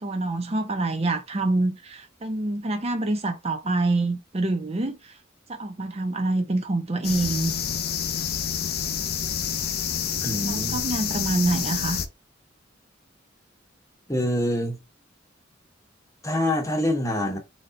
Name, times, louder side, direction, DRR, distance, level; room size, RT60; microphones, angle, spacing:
voice 1, 0.0-5.1 5.5-7.5 10.4-12.0, right 2 dB, 30° right, 0.6 m, -26 dB
sound 1, 7.0-12.1, left 8 dB, 50° left, 0.6 m, -28 dB
voice 2, 10.2-10.8 14.1-14.8 16.2-17.4, left 1 dB, 15° left, 1.0 m, -25 dB
4.1 x 3.3 x 3.7 m
head